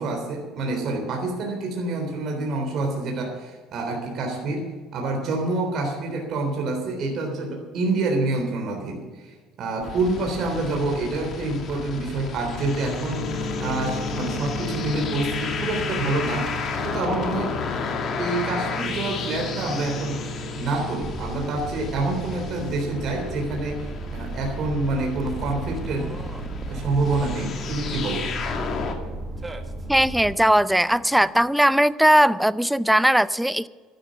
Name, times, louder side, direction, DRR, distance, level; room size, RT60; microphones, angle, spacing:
voice 1, 0.0-4.7 4.9-13.3 13.6-16.5 16.8-17.6 18.2-20.2 20.6-26.1 26.7-28.3, right 2 dB, 55° right, 1 dB, 3.6 m, -27 dB
sound 1, 9.8-28.9, left 5 dB, 50° left, 2.4 m, -33 dB
sound 2, 13.1-31.5, left 1 dB, 80° left, 2.5 m, -37 dB
sound 3, 21.0-30.3, right 2 dB, 20° right, 1.5 m, -35 dB
voice 2, 29.9-33.7, right 1 dB, 5° right, 17 dB, 0.6 m, -19 dB
12.5 x 12.0 x 7.0 m, 1.4 s
hypercardioid pair, 70°, 0 cm